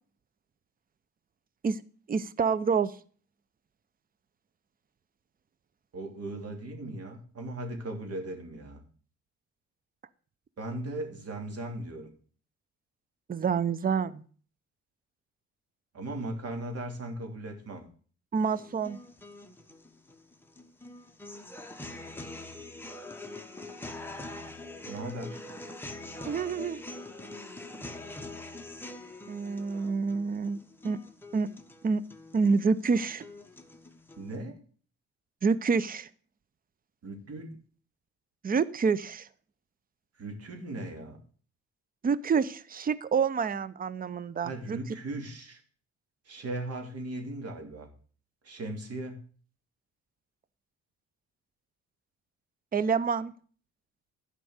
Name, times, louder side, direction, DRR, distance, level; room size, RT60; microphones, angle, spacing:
voice 1, 2.1-2.9 13.3-14.2 18.3-19.0 26.2-26.8 29.3-30.6 30.8-31.0 31.3-31.5 31.8-32.0 32.3-33.3 35.4-36.1 38.4-39.3 42.0-44.8 52.7-53.3, right 5 dB, 30° right, 17 dB, 0.7 m, -27 dB
voice 2, 5.9-8.8 10.6-12.1 15.9-17.9 24.9-25.4 34.2-34.6 37.0-37.5 40.2-41.2 44.4-45.6 46.2-47.9 48.4-49.3, right 1 dB, 50° right, 3 dB, 3.0 m, -38 dB
sound 1, 18.4-34.4, left 2 dB, 5° left, 1.3 m, -44 dB
11.5 x 5.3 x 8.0 m, 0.44 s
cardioid pair, 90°, 30 cm